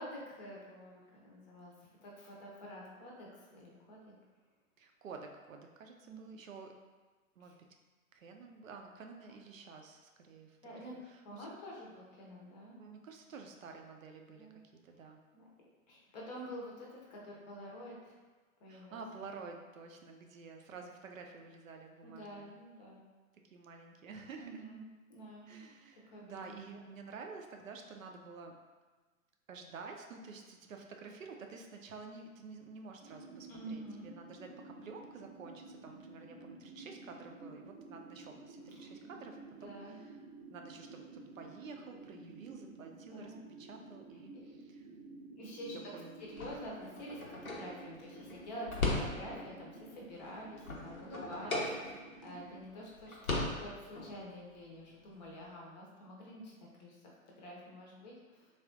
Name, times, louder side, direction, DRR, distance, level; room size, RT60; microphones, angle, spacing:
voice 1, 0.0-1.7 2.0-4.1 6.0-6.3 7.4-7.5 10.6-12.8 14.4-14.6 15.3-15.5 15.9-18.1 18.6-19.3 22.0-23.0 24.3-24.8 25.1-25.6 26.1-26.8 33.5-34.1 38.7-39.2 39.6-40.0 42.4-42.6 43.1-43.4 44.3-44.4 45.4-45.9 46.2-57.0 57.3-58.5, equal, 30° left, -3 dB, 0.6 m, -48 dB
voice 2, 4.8-6.7 7.4-7.6 8.1-11.5 12.7-14.5 14.8-15.2 18.7-22.5 23.5-24.6 25.5-28.5 29.5-40.1 40.5-44.9 45.7-46.2, right 4 dB, 70° right, 3 dB, 0.5 m, -50 dB
sound 1, 33.0-52.6, right 3 dB, 20° right, 0.6 m, -52 dB
sound 2, 46.3-49.6 50.0-52.3 52.6-52.7 53.0-54.1, left 2 dB, 85° left, 0.7 m, -38 dB
3.4 x 2.4 x 2.4 m, 1.3 s
figure-of-eight pair, 110°, 42 cm